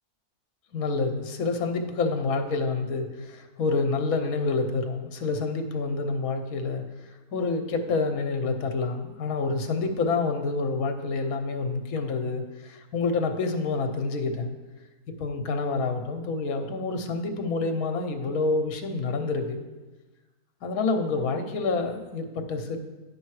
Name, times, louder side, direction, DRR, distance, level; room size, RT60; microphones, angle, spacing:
voice 1, 0.7-6.8 7.3-14.5 15.2-19.6 20.6-22.8, left 3 dB, 70° left, 6 dB, 1.2 m, -28 dB
9.7 x 5.3 x 4.7 m, 1.2 s
omnidirectional pair, 1.6 m